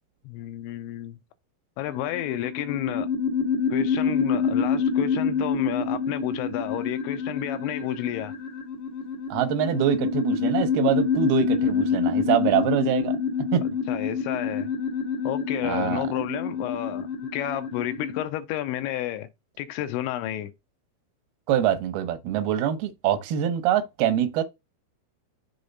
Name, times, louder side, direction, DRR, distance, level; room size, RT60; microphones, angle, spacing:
voice 1, 0.3-1.2 1.8-3.1 3.7-8.3 13.9-14.7 15.2-19.3 19.6-20.5, left 12 dB, 85° left, 2.8 m, -31 dB
sound 1, 1.9-18.2, left 5 dB, 55° left, 1.3 m, -27 dB
voice 2, 9.3-13.2 13.5-13.7 15.6-16.0 21.5-24.4, right 10 dB, 75° right, 2.3 m, -24 dB
7.0 x 3.5 x 5.2 m
omnidirectional pair, 5.5 m